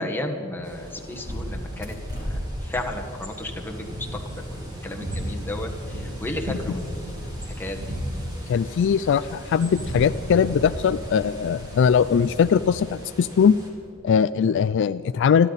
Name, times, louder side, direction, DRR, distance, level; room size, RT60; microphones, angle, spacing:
voice 1, 0.0-1.9 2.3-4.1 4.4-5.7 5.9-7.2 7.6-7.8, left 1 dB, 10° left, 1 dB, 1.5 m, -33 dB
Bird, 0.6-13.7, equal, 20° right, 3.2 m, -40 dB
Thunder, 0.6-13.9, equal, 75° right, 4.1 m, -36 dB
voice 2, 8.5-13.6 14.0-15.5, left 7 dB, 60° left, 14 dB, 0.3 m, -20 dB
28.5 x 11.5 x 4.1 m, 3.0 s
head